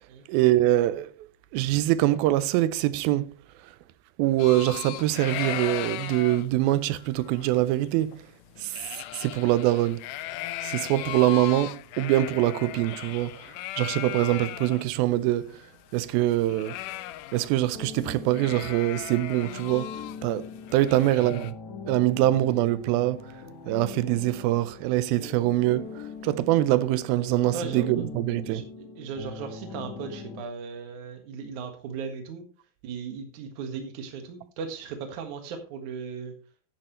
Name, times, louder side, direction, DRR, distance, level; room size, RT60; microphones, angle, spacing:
voice 1, 0.3-1.3 1.5-3.3 4.2-8.2 8.6-8.8 9.1-10.0 10.6-13.3 13.8-15.5 15.9-16.8 17.3-19.9 20.2-21.5 21.9-23.2 23.7-25.9 26.2-28.6, right 15 dB, 85° right, 2.4 m, -24 dB
sound 1, 4.4-14.8 15.2-15.3 15.5-17.7 17.9-18.1 18.3-21.5, left 14 dB, 85° left, 1.8 m, -37 dB
sound 2, 17.7-30.4, left 5 dB, 60° left, 2.2 m, -42 dB
voice 2, 27.5-28.0 28.4-32.4 32.8-36.3, right 5 dB, 60° right, 2.7 m, -37 dB
11.0 x 10.5 x 3.1 m
omnidirectional pair, 4.3 m